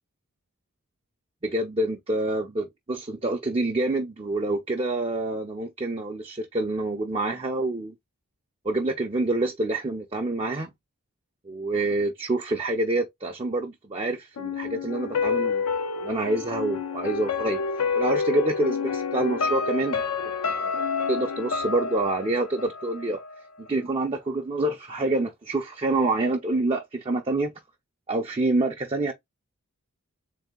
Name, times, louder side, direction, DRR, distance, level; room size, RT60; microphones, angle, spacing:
voice 1, 1.4-7.9 8.6-10.7 11.4-15.7 16.0-17.6 17.9-20.0 20.4-20.8 21.1-23.2 23.6-27.5 28.1-29.1, right 2 dB, 25° right, 0.4 m, -27 dB
sound 1, 14.4-23.3 23.7-23.8, left 5 dB, 80° left, 0.6 m, -28 dB
3.6 x 2.7 x 3.6 m
head